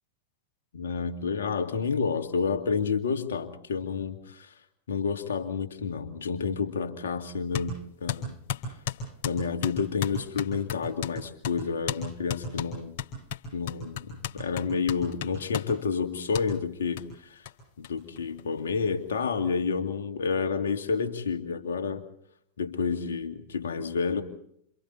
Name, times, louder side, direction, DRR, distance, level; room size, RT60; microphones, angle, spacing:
voice 1, 0.7-4.5 4.9-8.3 9.2-12.9 13.5-17.1 17.8-22.0 22.6-24.2, left 5 dB, 65° left, 6 dB, 2.3 m, -29 dB
sound 1, 7.5-7.7 8.1-11.2 11.4-11.6 11.9-12.0 12.3-15.7 16.3-16.5 17.0-17.1 17.5-17.6 17.8-17.9 18.2-18.9, left 8 dB, 50° left, 4.2 m, -34 dB
28.5 x 28.0 x 4.1 m, 0.68 s
figure-of-eight pair, 90°, 0 cm